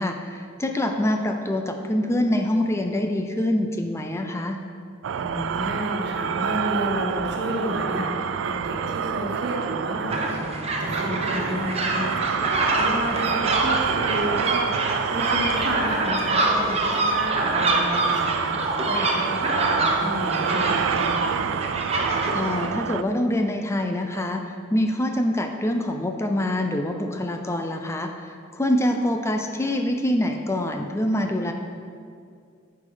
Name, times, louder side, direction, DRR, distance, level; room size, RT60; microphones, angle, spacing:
voice 1, 0.0-4.6 13.3-13.4 22.3-24.4 24.7-31.5, left 1 dB, 15° left, 4 dB, 0.4 m, -25 dB
sound 1, 5.0-23.0, right 7 dB, 85° right, 0.3 m, -28 dB
voice 2, 5.2-21.4, equal, 60° right, -1 dB, 1.6 m, -31 dB
sound 2, 10.1-22.7, right 2 dB, 35° right, 0.9 m, -26 dB
10.0 x 5.8 x 4.9 m, 2.3 s
head